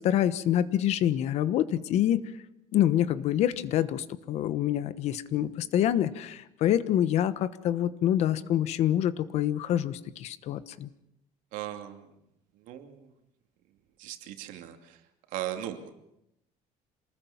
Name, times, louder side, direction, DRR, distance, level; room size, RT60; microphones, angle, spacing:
voice 1, 0.0-2.2 2.7-10.9, left 11 dB, 50° left, 14 dB, 1.1 m, -26 dB
voice 2, 11.5-12.1 12.7-13.1 14.0-15.0 15.3-15.9, right 12 dB, 70° right, 6 dB, 2.7 m, -38 dB
27.0 x 20.0 x 7.3 m, 0.85 s
cardioid pair, 170°, 14 cm